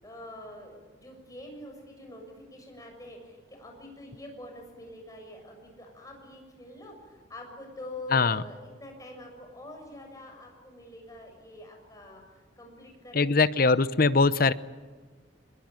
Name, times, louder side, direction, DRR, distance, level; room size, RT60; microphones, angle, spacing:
voice 1, 0.0-13.5, left 1 dB, 20° left, 2 dB, 7.1 m, -45 dB
voice 2, 8.1-8.4 13.1-14.5, left 4 dB, 50° left, 15 dB, 0.8 m, -22 dB
24.5 x 22.0 x 9.1 m, 1.4 s
head